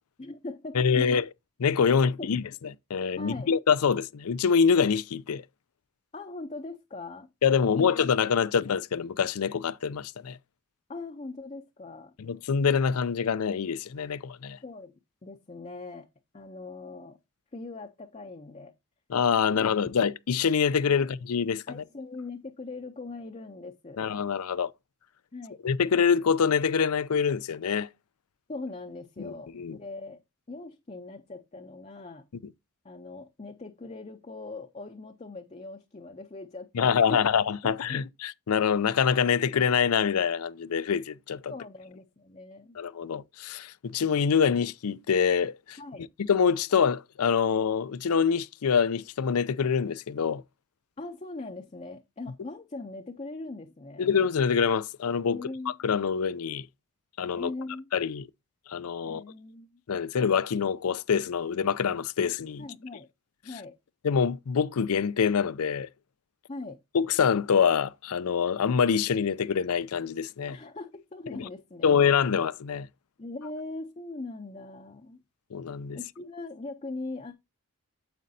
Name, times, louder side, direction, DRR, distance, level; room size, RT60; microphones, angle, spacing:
voice 1, 0.2-1.1 1.9-2.3 3.2-3.5 6.1-7.3 7.6-8.1 10.9-12.1 14.6-14.9 15.2-16.1 16.3-17.2 17.5-18.7 21.0-21.1 21.7-24.0 25.3-25.6 28.5-30.2 30.5-32.2 32.8-37.3 37.6-38.1 41.5-42.8 45.8-46.1 51.0-54.1 55.3-55.8 57.3-57.9 59.0-59.8 62.6-63.1 63.4-63.8 66.5-66.8 70.5-72.0 73.2-75.2 75.9-77.3, left 2 dB, 30° left, 0.5 m, -40 dB
voice 2, 0.7-1.2 1.6-2.4 2.9-5.4 7.4-10.4 12.2-14.6 19.1-21.8 24.0-24.7 25.6-27.9 29.2-29.8 36.7-41.5 42.8-45.8 46.3-50.4 54.0-55.4 55.8-56.6 57.2-57.5 57.9-58.3 58.7-59.2 59.9-62.6 64.0-65.9 66.9-70.6 71.3-71.4 71.8-72.9 75.5-76.0, left 6 dB, 90° left, 0.5 m, -25 dB
9.3 x 7.5 x 2.7 m
head